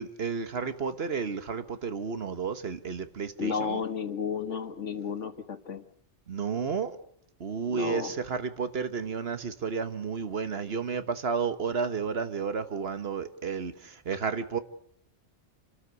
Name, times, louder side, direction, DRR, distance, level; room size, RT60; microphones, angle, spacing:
voice 1, 0.0-3.8 6.3-7.0 7.4-14.6, right 5 dB, 55° right, 11 dB, 1.4 m, -32 dB
voice 2, 3.4-5.8 7.7-8.1, left 6 dB, 80° left, 9 dB, 1.8 m, -32 dB
28.5 x 13.0 x 8.2 m, 0.75 s
omnidirectional pair, 1.2 m